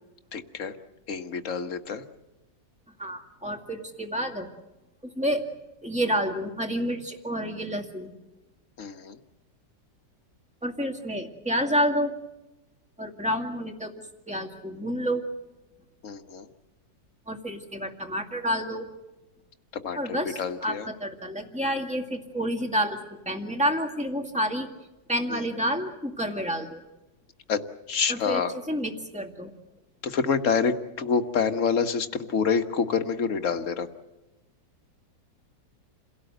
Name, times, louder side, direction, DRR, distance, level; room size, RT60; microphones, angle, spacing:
voice 1, 0.3-0.7 1.1-2.0 8.8-9.2 16.0-16.5 19.8-20.9 25.3-25.4 27.5-27.6 27.9-28.5 30.0-33.9, left 6 dB, 45° left, 7 dB, 1.6 m, -27 dB
voice 2, 3.0-4.5 5.0-5.5 5.8-8.1 10.6-12.1 13.0-13.9 14.3-15.3 17.3-18.9 20.0-24.7 25.1-26.8 28.1-29.5, equal, 5° right, 5 dB, 2.0 m, -29 dB
29.0 x 17.5 x 7.9 m, 1.0 s
omnidirectional pair, 1.9 m